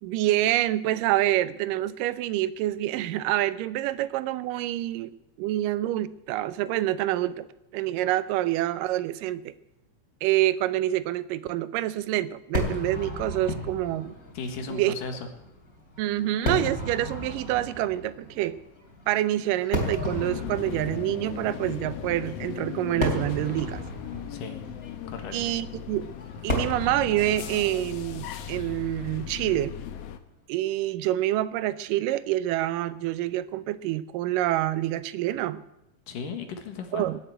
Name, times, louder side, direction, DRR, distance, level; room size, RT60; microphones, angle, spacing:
voice 1, 0.0-5.1 5.4-7.5 7.7-9.6 10.2-14.1 14.7-14.9 16.0-18.6 19.1-23.8 25.3-26.1 26.4-29.7 30.5-35.6 36.9-37.2, right 14 dB, 90° right, 16 dB, 2.3 m, -27 dB
Fireworks, 12.5-29.9, left 1 dB, 25° left, 3.0 m, -35 dB
voice 2, 14.3-15.2 24.3-24.6 25.1-25.4 36.1-37.1, left 5 dB, 85° left, 6 dB, 3.3 m, -35 dB
sound 1, 20.1-30.2, left 8 dB, 70° left, 1.6 m, -38 dB
18.5 x 7.8 x 9.2 m, 0.89 s
omnidirectional pair, 3.8 m